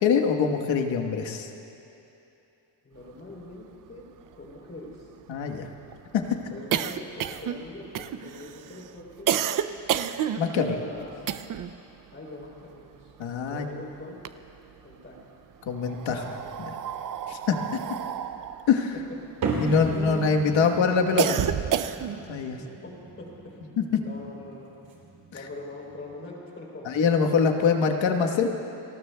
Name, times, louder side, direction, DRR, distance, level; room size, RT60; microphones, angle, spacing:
voice 1, 0.0-1.5 5.3-5.7 6.1-6.5 10.4-10.8 13.2-13.6 15.7-16.4 16.7-16.8 17.3-17.6 18.7-18.9 19.6-21.4 22.3-22.6 23.8-24.0 26.8-28.5, left 6 dB, 85° left, 3 dB, 1.4 m, -24 dB
voice 2, 2.8-4.1 4.4-5.1 6.5-9.3 10.6-11.3 12.1-13.1 13.5-14.2 14.8-15.2 19.8-20.3 22.6-23.5 24.0-24.7 25.3-26.9, left 2 dB, 30° left, -3 dB, 3.5 m, -42 dB
sound 1, 3.6-3.7 3.9-4.0 4.3-11.8 12.1-13.7 14.0-14.9 15.7-20.2 20.6-22.3, right 9 dB, 45° right, 0.5 m, -30 dB
sound 2, 19.4-26.1, right 3 dB, 80° right, 3.1 m, -36 dB
29.5 x 19.5 x 2.3 m, 2.8 s
cardioid pair, 155°, 45 cm